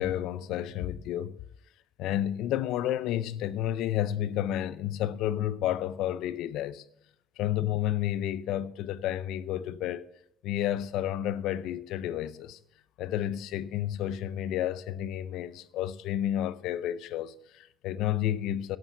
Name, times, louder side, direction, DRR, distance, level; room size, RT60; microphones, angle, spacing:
voice 1, 0.0-1.4 2.0-6.8 7.4-10.1 10.4-12.6 13.0-18.8, left 12 dB, 75° left, 0.5 m, -31 dB
11.5 x 7.2 x 7.0 m
cardioid pair, 95°, 0 cm